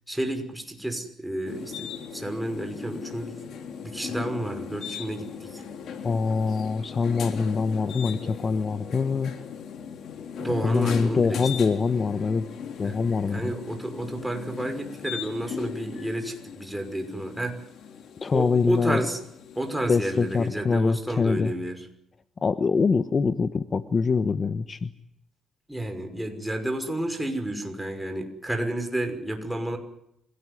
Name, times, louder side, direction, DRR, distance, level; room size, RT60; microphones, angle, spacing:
voice 1, 0.1-3.4 3.8-5.6 10.4-11.5 12.8-13.0 13.3-17.6 18.3-19.2 19.6-21.9 25.7-29.8, right 1 dB, 5° right, 5 dB, 5.9 m, -31 dB
sound 1, 1.5-20.5, left 7 dB, 70° left, 3.7 m, -38 dB
voice 2, 6.0-9.3 10.6-12.5 12.8-13.5 18.2-19.0 19.9-21.5 22.4-24.9, left 5 dB, 40° left, 12 dB, 1.1 m, -24 dB
25.5 x 17.5 x 10.0 m, 0.78 s
cardioid pair, 90°, 0 cm